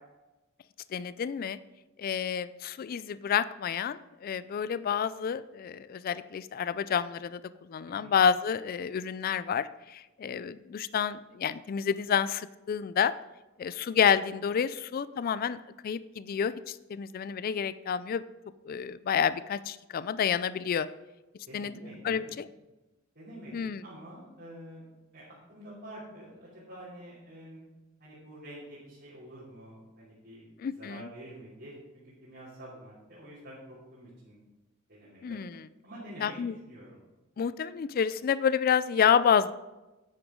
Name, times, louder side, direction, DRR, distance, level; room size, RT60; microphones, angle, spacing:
voice 1, 0.9-1.6 2.0-7.4 7.7-13.1 13.6-18.2 18.6-20.9 21.5-21.7 22.0-22.5 23.5-23.8 30.6-31.1 35.2-35.6 36.2-36.5 37.4-39.5, left 7 dB, 45° left, 16 dB, 0.3 m, -29 dB
voice 2, 21.5-22.3 23.1-24.9 25.1-27.7 28.0-30.4 30.8-34.4 34.9-35.4 35.8-36.9, right 1 dB, 55° right, -10 dB, 3.0 m, -47 dB
9.8 x 8.6 x 3.7 m, 1.1 s
head